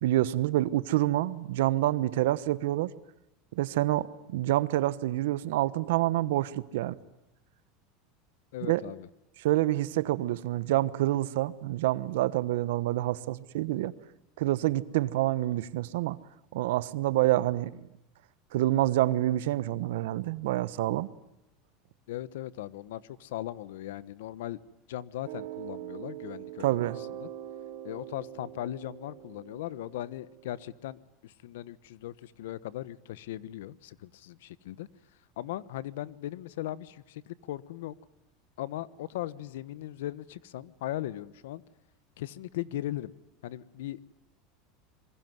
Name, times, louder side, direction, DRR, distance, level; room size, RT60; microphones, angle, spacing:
voice 1, 0.0-2.9 3.5-7.0 8.7-8.8 9.4-13.9 14.4-16.2 16.5-17.8 18.5-21.1 26.6-27.0, right 15 dB, 80° right, 1.1 m, -27 dB
voice 2, 8.5-9.1 22.1-24.6 24.9-26.9 27.2-27.3 27.8-34.9 35.4-37.9 38.6-41.6 42.2-43.1 43.4-44.0, left 14 dB, 85° left, 1.1 m, -38 dB
sound 1, 25.2-30.7, right 13 dB, 65° right, 3.5 m, -43 dB
27.0 x 22.5 x 9.4 m
supercardioid pair, 150°, 0 cm